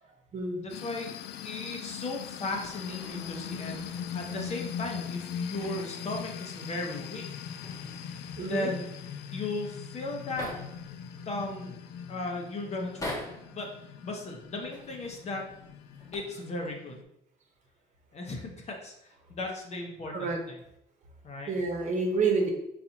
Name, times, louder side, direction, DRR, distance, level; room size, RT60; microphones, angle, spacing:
voice 1, 0.6-1.1 1.4-7.6 8.4-8.9 9.3-10.5 11.3-11.8 12.1-13.2 13.5-13.7 14.0-15.4 16.1-17.1 18.1-20.6 21.2-21.5, left 2 dB, 40° left, 1 dB, 1.0 m, -36 dB
sound 1, 0.7-17.0, left 8 dB, 75° left, 0.4 m, -41 dB
sound 2, 2.4-4.9 5.4-6.5 6.7-6.8 7.3-8.8 9.6-9.7 9.9-10.9 11.5-12.0 12.8-13.5 14.6-15.2 15.9-16.2, left 1 dB, 20° left, 1.1 m, -44 dB
voice 2, 8.4-8.7 20.1-20.4 21.5-22.5, right 4 dB, 45° right, 1 dB, 1.0 m, -28 dB
4.2 x 4.1 x 2.9 m, 0.80 s
cardioid pair, 110°, 17 cm